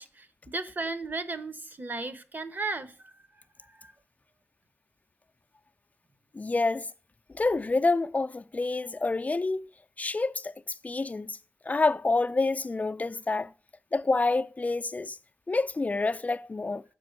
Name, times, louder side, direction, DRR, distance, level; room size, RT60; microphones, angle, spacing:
voice 1, 0.0-3.1 3.6-3.9, right 3 dB, 45° right, 0.9 m, -35 dB
voice 2, 6.3-6.9 7.3-9.7 10.0-10.5 10.8-11.4 11.7-13.5 13.9-15.2 15.5-16.8, left 3 dB, 35° left, 0.4 m, -27 dB
6.9 x 5.0 x 6.4 m
cardioid pair, 60°, 5 cm